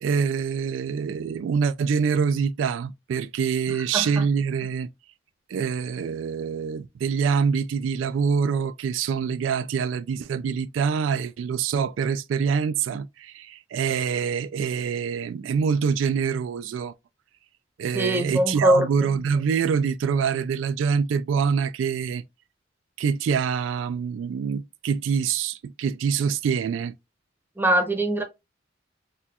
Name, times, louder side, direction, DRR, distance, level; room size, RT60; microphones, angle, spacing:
voice 1, 0.0-4.9 5.5-16.9 17.8-22.2 23.0-26.9, right 6 dB, 90° right, 0.3 m, -25 dB
voice 2, 3.9-4.2 17.9-18.9 27.6-28.2, right 1 dB, 10° right, 0.7 m, -22 dB
4.2 x 2.3 x 2.3 m
head